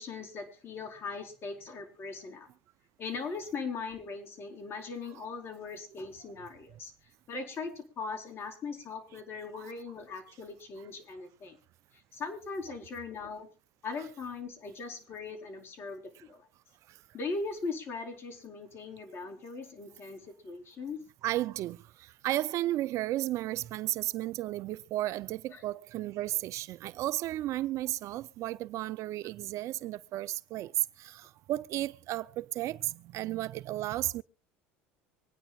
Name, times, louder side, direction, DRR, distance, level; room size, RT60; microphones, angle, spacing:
voice 1, 0.0-2.5 3.0-11.6 11.9-13.5 13.8-16.5 17.1-21.0 25.5-25.6, left 4 dB, 40° left, 4.5 m, -40 dB
voice 2, 21.2-30.7 31.0-34.2, right 15 dB, 55° right, 0.5 m, -34 dB
25.5 x 9.9 x 2.4 m
supercardioid pair, 90°, 6 cm